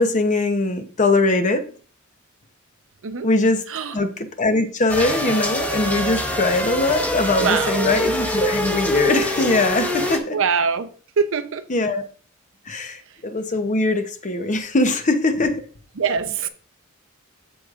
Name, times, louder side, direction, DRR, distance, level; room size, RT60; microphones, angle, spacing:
voice 1, 0.0-1.6 3.2-3.6 3.9-4.1 4.4-10.4 11.7-12.0 12.7-15.6, left 2 dB, 35° left, 0.8 m, -21 dB
voice 2, 3.7-4.0 7.3-7.9 10.3-10.9 11.2-11.7 13.1-13.2 16.0-16.5, right 6 dB, 65° right, 0.7 m, -23 dB
sound 1, 4.9-10.2, equal, 5° left, 1.1 m, -24 dB
14.0 x 4.9 x 2.5 m
head